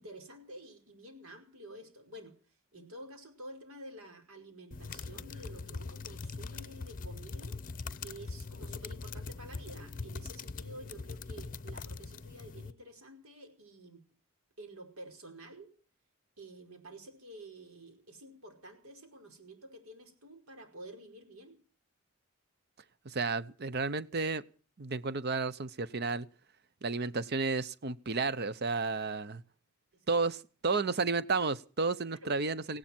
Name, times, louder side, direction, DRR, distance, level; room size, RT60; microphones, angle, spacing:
voice 1, 0.0-2.4 2.7-7.6 8.0-14.0 14.6-15.7 16.4-21.6 29.9-30.1 32.2-32.3, right 1 dB, 80° right, 4 dB, 5.0 m, -50 dB
sound 1, 4.7-12.7, left 4 dB, 40° left, 0.7 m, -42 dB
voice 2, 23.0-24.4 24.8-26.3 26.8-29.4 30.1-32.8, right 4 dB, 50° right, 16 dB, 0.8 m, -32 dB
18.5 x 17.0 x 4.4 m, 0.40 s
head